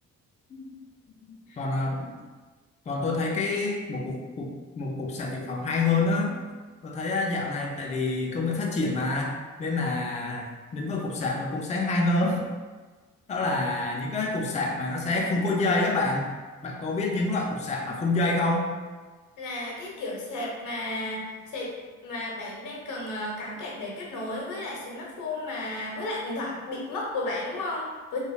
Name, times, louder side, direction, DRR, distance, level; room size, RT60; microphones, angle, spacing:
voice 1, 1.3-2.2 2.9-4.5 4.8-6.4 6.8-9.3 9.6-10.5 10.7-12.4 13.3-16.2 16.6-18.6, left 2 dB, 25° left, -1 dB, 0.4 m, -27 dB
voice 2, 19.4-21.7 22.0-28.2, left 2 dB, 85° left, -2 dB, 0.7 m, -33 dB
3.2 x 2.2 x 2.3 m, 1.3 s
cardioid pair, 90°, 30 cm